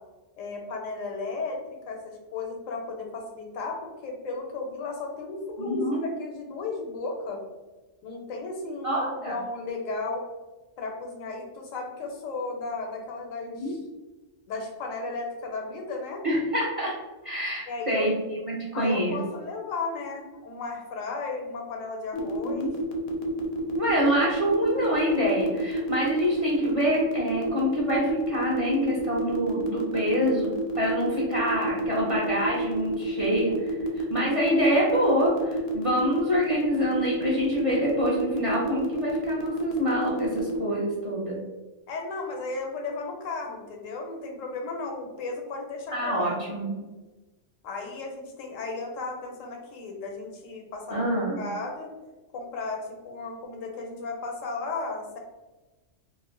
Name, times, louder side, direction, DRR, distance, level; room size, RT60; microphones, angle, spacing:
voice 1, 0.4-1.6 1.9-7.4 8.0-10.2 10.8-13.8 14.5-16.2 17.7-18.2 18.7-22.7 41.9-46.7 47.6-51.1 51.4-51.9 52.3-55.2, left 3 dB, 85° left, 1 dB, 1.0 m, -34 dB
voice 2, 5.6-6.0 8.8-9.4 13.5-13.7 16.2-16.9 17.2-18.1 18.5-19.2 22.4-22.7 23.8-30.5 30.8-41.4 45.9-46.8 50.9-51.4, equal, 45° right, -5 dB, 0.4 m, -26 dB
sound 1, 22.1-40.6, right 2 dB, 65° left, 0.7 m, -30 dB
2.4 x 2.1 x 3.6 m, 1.2 s
omnidirectional pair, 1.3 m